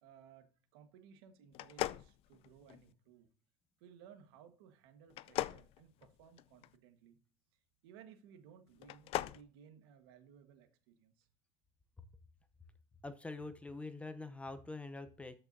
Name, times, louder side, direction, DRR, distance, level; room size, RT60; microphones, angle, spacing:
voice 1, 0.0-3.3 3.8-7.2 7.5-11.3, right 8 dB, 85° right, 1.5 m, -60 dB
sound 1, 1.5-2.9 5.1-6.7 8.7-9.4, left 15 dB, 50° left, 0.4 m, -39 dB
voice 2, 13.0-15.3, left 3 dB, 10° left, 0.7 m, -45 dB
13.0 x 5.7 x 2.7 m
cardioid pair, 135°, 13 cm